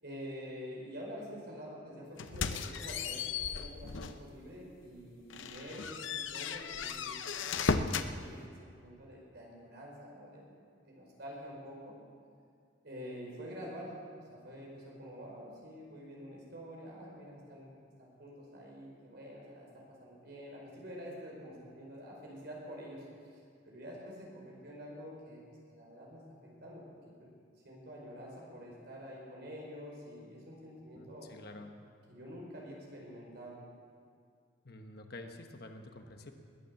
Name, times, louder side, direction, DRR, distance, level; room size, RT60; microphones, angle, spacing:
voice 1, 0.0-7.2 7.5-10.5 10.8-12.0 12.8-14.0 14.3-17.7 18.0-25.4 25.7-27.3 27.6-31.3 32.1-33.6, equal, 55° right, -2 dB, 5.0 m, -47 dB
sound 1, 2.2-4.3 4.7-4.9 5.3-8.1, left 5 dB, 75° left, 0.7 m, -35 dB
voice 2, 30.9-31.7 34.6-36.3, left 2 dB, 55° left, 5 dB, 1.2 m, -49 dB
20.5 x 9.4 x 7.0 m, 2.2 s
head